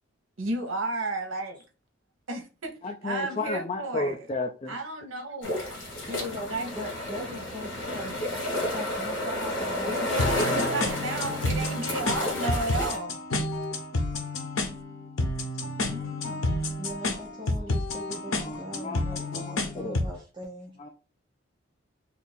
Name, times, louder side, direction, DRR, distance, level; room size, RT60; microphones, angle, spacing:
voice 1, 0.4-1.6 2.3-2.8 3.0-4.3 4.7-5.6 6.5-6.7 9.8-13.2 15.8-16.4, right 2 dB, 85° right, 0.8 m, -33 dB
voice 2, 2.8-4.8 18.2-20.0 20.8-20.9, left 3 dB, 30° left, 0.3 m, -33 dB
sound 1, 5.4-13.0, left 1 dB, 65° left, 1.3 m, -31 dB
voice 3, 5.8-8.4 8.7-10.1 16.8-20.7, equal, 25° right, 0.5 m, -40 dB
sound 2, 10.2-20.2, left 2 dB, 90° left, 0.7 m, -30 dB
2.8 x 2.5 x 4.0 m
head